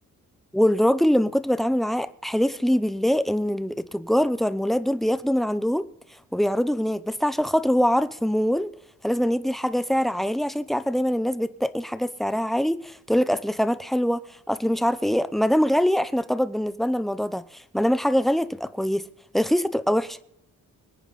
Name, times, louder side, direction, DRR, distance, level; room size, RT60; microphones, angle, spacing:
voice 1, 0.5-5.9 6.3-8.7 9.0-19.1 19.3-20.2, equal, ahead, 0.8 m, -23 dB
25.5 x 9.1 x 4.2 m
cardioid pair, 90°, 33 cm